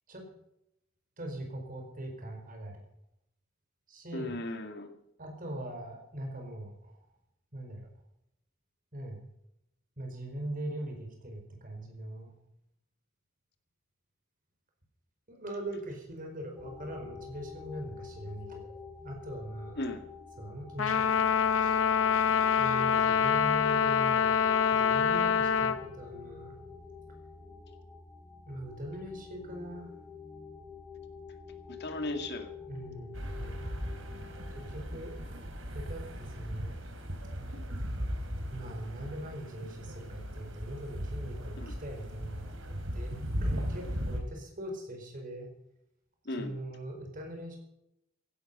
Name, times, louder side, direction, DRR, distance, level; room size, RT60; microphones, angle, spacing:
voice 1, 1.2-2.8 3.9-4.4 5.2-7.0 7.5-7.9 8.9-9.2 10.0-12.3 15.3-18.7 19.0-19.8 20.4-21.8 22.6-26.6 28.5-29.9 32.7-33.8 34.5-35.1 35.7-36.7 37.4-37.6 38.5-42.5 42.9-43.1 43.4-45.5 46.4-47.6, right 1 dB, 45° right, 3 dB, 4.8 m, -41 dB
voice 2, 4.1-4.9 19.8-20.0 31.8-32.5 41.6-41.7 46.3-46.5, left 2 dB, 55° left, 7 dB, 2.0 m, -36 dB
sound 1, 16.6-34.8, left 5 dB, 5° left, 3.4 m, -48 dB
Trumpet, 20.8-25.8, left 7 dB, 80° left, 1.0 m, -25 dB
sound 2, 33.1-44.2, equal, 75° right, 3.3 m, -37 dB
16.0 x 12.0 x 5.4 m, 0.80 s
head